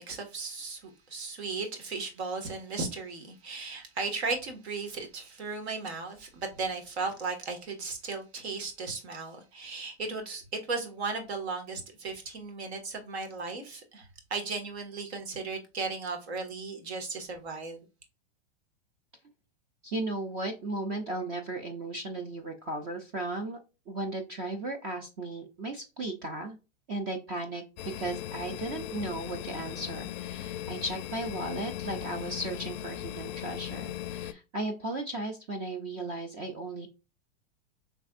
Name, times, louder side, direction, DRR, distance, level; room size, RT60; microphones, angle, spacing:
voice 1, 0.0-17.9, right 4 dB, 75° right, 1.6 m, -36 dB
voice 2, 19.8-23.6 23.9-26.6 26.9-36.9, right 2 dB, 25° right, 0.3 m, -36 dB
sound 1, 27.8-34.3, left 12 dB, 45° left, 0.4 m, -38 dB
5.2 x 3.4 x 2.4 m
supercardioid pair, 160°, 33 cm